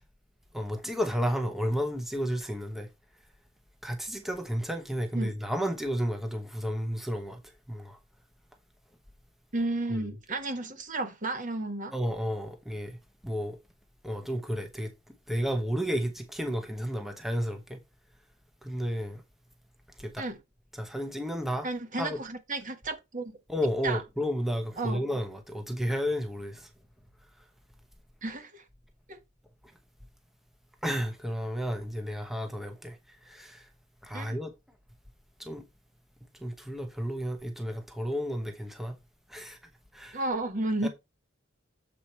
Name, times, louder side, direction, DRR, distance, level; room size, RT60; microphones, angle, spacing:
voice 1, 0.5-2.9 3.8-7.4 7.7-8.0 9.9-10.1 11.9-13.6 14.0-17.8 18.6-19.2 20.0-20.2 20.7-21.7 22.0-22.2 23.5-26.7 30.8-33.7 34.0-34.5 35.4-35.6 36.3-39.0 39.3-39.6 39.9-40.2 40.8-40.9, equal, ahead, 1.0 m, -32 dB
voice 2, 9.5-11.9 20.2-20.4 21.6-23.3 23.8-24.0 24.8-25.0 28.2-28.6 29.1-29.2 34.1-34.4 40.1-40.9, right 2 dB, 45° right, 1.3 m, -32 dB
7.5 x 5.0 x 4.4 m
head